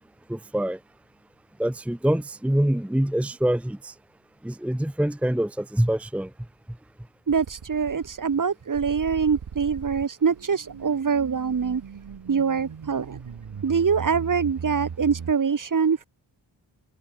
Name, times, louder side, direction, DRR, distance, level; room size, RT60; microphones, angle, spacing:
voice 1, 0.3-0.8 1.6-3.9 4.4-6.3, right 1 dB, 5° right, 1.0 m, -25 dB
voice 2, 7.3-11.8 12.3-13.2 13.6-16.1, right 6 dB, 40° right, 1.7 m, -24 dB
sound 1, 7.3-8.4 8.7-15.3, right 7 dB, 65° right, 7.2 m, -39 dB
wide cardioid pair, 135°, 46 cm